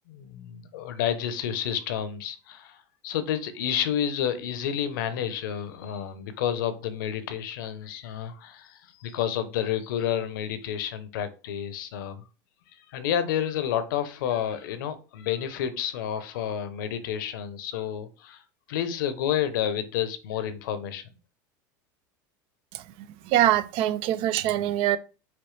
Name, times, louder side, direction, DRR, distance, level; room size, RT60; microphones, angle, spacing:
voice 1, 0.1-12.2 12.8-18.4 18.7-21.0, left 9 dB, 80° left, 0.8 m, -30 dB
voice 2, 23.2-25.0, right 13 dB, 60° right, 0.5 m, -23 dB
5.1 x 3.1 x 3.2 m
hypercardioid pair, 100°, 10 cm